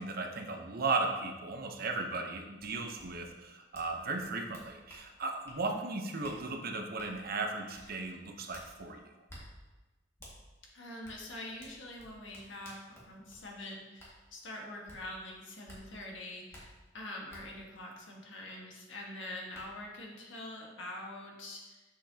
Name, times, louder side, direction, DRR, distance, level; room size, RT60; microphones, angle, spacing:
voice 1, 0.0-9.0, right 3 dB, 55° right, 3 dB, 0.8 m, -36 dB
sound 1, 2.6-2.7 3.0-3.1 3.7-3.9 4.2-5.0 5.5-5.6 6.2-6.4 7.0-7.1 7.7-7.9 8.5-8.7 9.3-9.4 10.2-10.3 11.0-11.2 11.6-13.4 14.0-14.1 14.9-15.0 15.7-15.8 16.5-16.6 17.3-17.4 18.9-19.0 19.5-19.6, equal, 15° left, 1.9 m, -52 dB
voice 2, 5.7-6.1 10.7-21.8, left 1 dB, 85° left, -1 dB, 1.6 m, -45 dB
7.8 x 6.8 x 2.8 m, 1.2 s
head